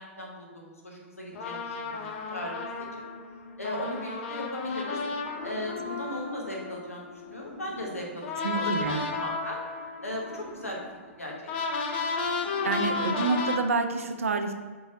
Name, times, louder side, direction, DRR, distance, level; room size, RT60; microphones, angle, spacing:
voice 1, 0.0-2.5 2.9-3.0 3.6-5.0 5.4-9.6 10.0-10.8 11.2-11.3 11.6-11.7, left 1 dB, 85° left, -2 dB, 1.1 m, -37 dB
sound 1, 1.3-7.7 8.2-13.6, left 4 dB, 50° left, 0.5 m, -33 dB
sound 2, 5.1-9.2 9.9-13.9, left 1 dB, 25° left, 1.4 m, -49 dB
voice 2, 8.4-9.0 12.6-14.5, right 4 dB, 75° right, 7 dB, 0.5 m, -28 dB
4.5 x 3.8 x 2.7 m, 1.5 s
figure-of-eight pair, 110°, 7 cm